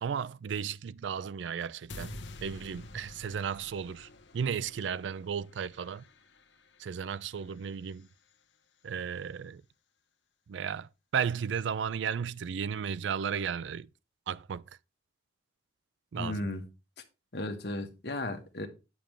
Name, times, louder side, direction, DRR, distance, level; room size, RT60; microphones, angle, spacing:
voice 1, 0.0-6.0 6.8-8.1 8.8-9.6 10.5-13.9 14.3-14.6 16.1-16.5, right 7 dB, 85° right, 0.4 m, -34 dB
sound 1, 1.9-8.1, left 2 dB, 90° left, 1.0 m, -49 dB
voice 2, 16.1-16.6 17.3-18.7, left 1 dB, 65° left, 1.4 m, -35 dB
9.0 x 7.0 x 3.4 m
head